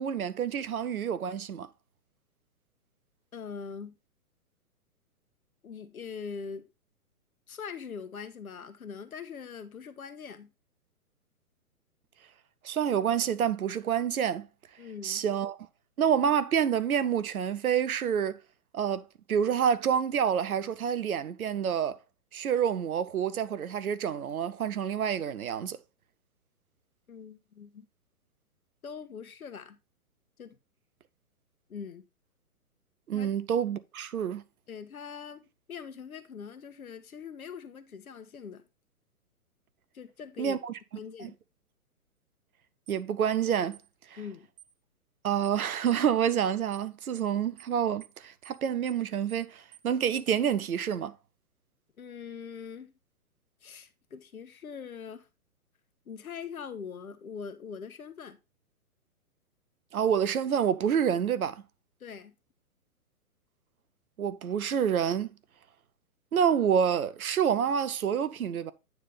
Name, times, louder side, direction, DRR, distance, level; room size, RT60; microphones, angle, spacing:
voice 1, 0.0-1.7 12.6-14.5 15.0-15.6 16.0-18.4 18.7-22.0 22.3-25.8 33.1-34.4 40.4-40.7 41.2-41.3 42.9-43.8 45.2-51.1 59.9-61.6 64.2-65.3 66.3-68.7, right 8 dB, 70° right, 0.8 m, -28 dB
voice 2, 3.3-4.0 5.6-6.7 7.5-10.5 14.8-15.2 27.1-27.9 28.8-29.8 30.4-30.6 31.7-32.0 33.1-33.3 34.7-38.6 39.9-40.6 40.9-41.3 44.2-44.5 52.0-52.9 53.6-55.3 56.1-58.4 62.0-62.3, left 6 dB, 70° left, 1.3 m, -42 dB
sound 1, 42.9-43.0 43.7-43.9 44.6-44.7 45.4-45.6 45.9-46.0 46.3-46.5 46.7-46.9 47.1-47.3 47.6-47.7 48.0-48.2 48.4-48.6 48.9-49.0 49.3-49.5 49.7-49.9 50.1-50.3, right 11 dB, 35° right, 0.9 m, -53 dB
9.4 x 3.3 x 5.5 m
figure-of-eight pair, 125°, 45 cm